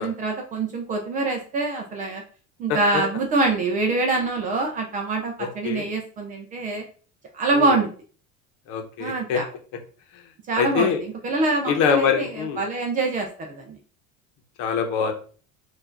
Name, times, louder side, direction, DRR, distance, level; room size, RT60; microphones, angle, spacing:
voice 1, 0.0-2.2 2.6-6.8 7.3-7.9 9.0-9.4 10.5-10.9 11.2-13.8, right 3 dB, 25° right, 2 dB, 0.4 m, -25 dB
voice 2, 2.7-3.0 5.4-5.9 7.5-7.8 8.7-9.4 10.1-10.2 10.6-11.0 11.6-12.6 14.6-15.1, left 7 dB, 55° left, 5 dB, 0.9 m, -24 dB
4.5 x 2.5 x 4.3 m, 0.41 s
cardioid pair, 180°, 36 cm